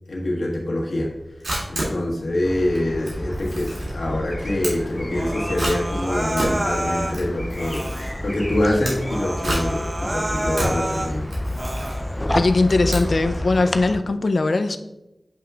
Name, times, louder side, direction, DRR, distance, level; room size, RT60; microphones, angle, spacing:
voice 1, 0.1-1.1 1.7-11.3, left 1 dB, 90° left, -3 dB, 1.4 m, -25 dB
Camera, 1.1-13.5, right 1 dB, 85° right, 2.4 m, -31 dB
sound 1, 2.4-14.0, left 1 dB, 15° left, 0.5 m, -30 dB
Human voice, 5.1-7.2 7.6-8.2 8.6-8.7 9.0-11.1 11.5-12.1, right 1 dB, 25° right, 0.7 m, -29 dB
voice 2, 12.3-14.8, left 3 dB, 70° left, 9 dB, 0.5 m, -20 dB
9.3 x 5.9 x 2.4 m, 0.93 s
wide cardioid pair, 60°, 0 cm